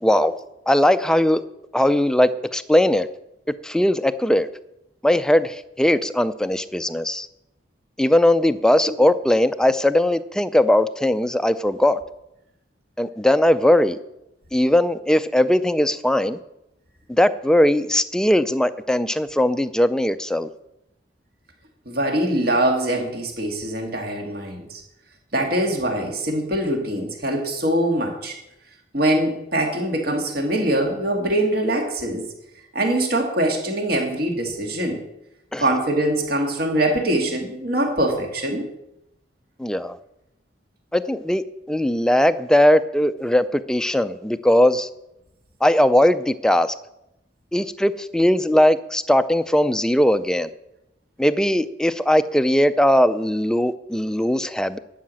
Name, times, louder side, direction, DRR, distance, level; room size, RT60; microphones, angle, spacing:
voice 1, 0.0-0.4 0.7-1.4 1.7-3.1 3.6-4.5 5.0-7.3 8.0-12.0 13.0-14.0 14.5-16.4 17.1-20.5 35.5-35.6 39.6-40.0 40.9-41.4 41.7-44.9 45.6-46.7 47.5-50.5 51.2-54.8, left 1 dB, 5° left, 12 dB, 0.4 m, -19 dB
voice 2, 21.9-24.8 25.3-28.4 28.9-32.2 32.7-35.0 35.6-38.7, right 1 dB, 55° right, 2 dB, 2.1 m, -23 dB
11.5 x 5.8 x 7.6 m, 0.88 s
head